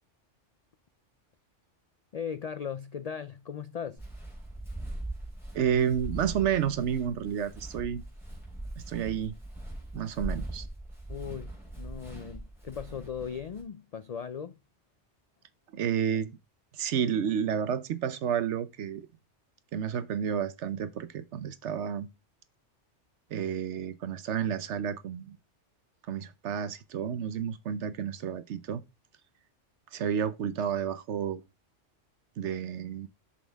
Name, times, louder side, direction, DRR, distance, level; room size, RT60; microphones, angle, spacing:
voice 1, 2.1-4.0 11.1-14.6, left 7 dB, 85° left, 0.3 m, -38 dB
Walk footsteps, 4.0-13.6, right 1 dB, ahead, 3.7 m, -41 dB
voice 2, 5.5-8.0 8.8-9.3 9.9-10.7 15.7-16.3 16.7-19.1 19.7-22.1 23.3-25.4 26.1-28.8 29.9-31.4 32.4-33.1, right 8 dB, 70° right, 1.0 m, -30 dB
7.1 x 6.4 x 3.4 m
omnidirectional pair, 1.2 m